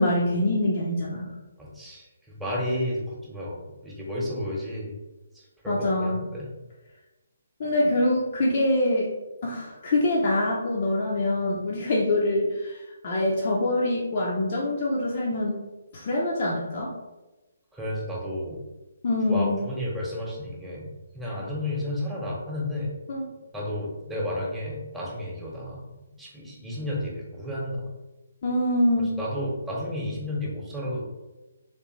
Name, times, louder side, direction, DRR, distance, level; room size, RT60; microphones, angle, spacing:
voice 1, 0.0-1.3 5.7-6.2 7.6-9.1 9.4-15.6 15.9-16.9 19.0-19.6 23.1-23.2 28.4-29.1, left 1 dB, 50° left, -4 dB, 0.7 m, -24 dB
voice 2, 1.6-2.1 2.4-3.6 3.8-4.9 5.3-6.5 17.7-18.6 19.3-22.9 23.5-27.8 29.2-31.0, left 1 dB, 5° right, -5 dB, 1.1 m, -32 dB
3.3 x 3.3 x 3.2 m, 1.1 s
figure-of-eight pair, 145°, 0 cm